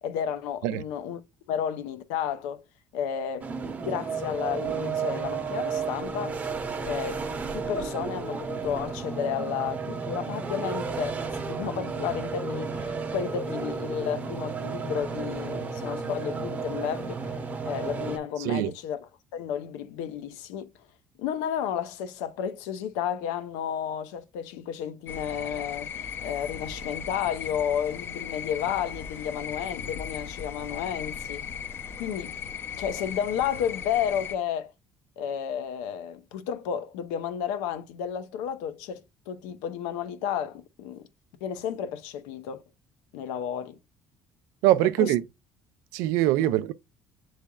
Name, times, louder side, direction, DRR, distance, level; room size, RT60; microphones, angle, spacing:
voice 1, 0.0-1.2 1.5-2.6 2.9-3.5 3.8-6.4 6.8-7.3 7.5-17.4 17.6-20.7 21.2-31.5 32.0-32.4 32.8-34.7 35.2-41.1 41.4-42.6 43.1-43.8 45.0-45.1 46.4-46.5, left 8 dB, 90° left, 0.6 m, -32 dB
sound 1, 3.4-18.2, right 5 dB, 30° right, 0.9 m, -33 dB
voice 2, 18.4-18.7 44.6-45.2 45.9-46.7, right 14 dB, 85° right, 0.4 m, -23 dB
sound 2, 25.1-34.4, left 7 dB, 45° left, 0.5 m, -37 dB
6.9 x 3.2 x 2.3 m
cardioid pair, 100°, 5 cm